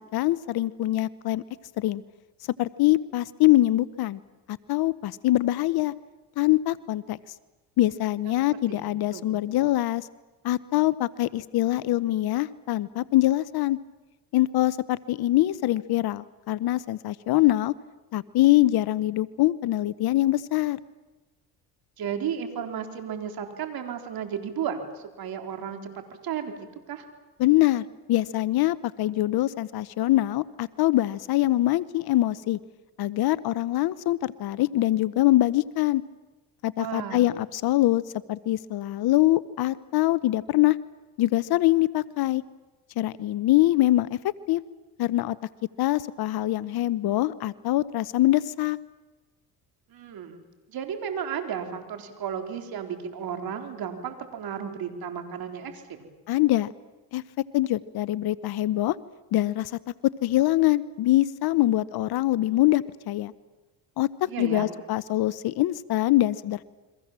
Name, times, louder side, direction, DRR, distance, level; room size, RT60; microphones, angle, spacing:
voice 1, 0.0-1.4 1.8-2.0 2.6-4.2 4.5-5.9 6.4-7.2 7.8-10.1 10.4-13.8 14.3-17.7 18.1-20.8 27.4-32.6 33.0-36.0 36.6-38.0 38.3-40.8 41.2-42.4 43.0-44.6 45.0-45.4 45.8-48.8 56.3-56.7 57.1-57.2 57.5-59.0 59.3-59.8 60.2-63.3 64.0-66.6, left 16 dB, 60° left, 18 dB, 0.9 m, -24 dB
voice 2, 8.7-9.3 22.0-25.9 26.2-26.5 26.9-27.1 36.8-37.3 49.9-50.4 50.7-56.1 64.3-64.7, right 8 dB, 60° right, 6 dB, 4.2 m, -33 dB
29.5 x 23.5 x 7.5 m, 1.2 s
supercardioid pair, 85°, 41 cm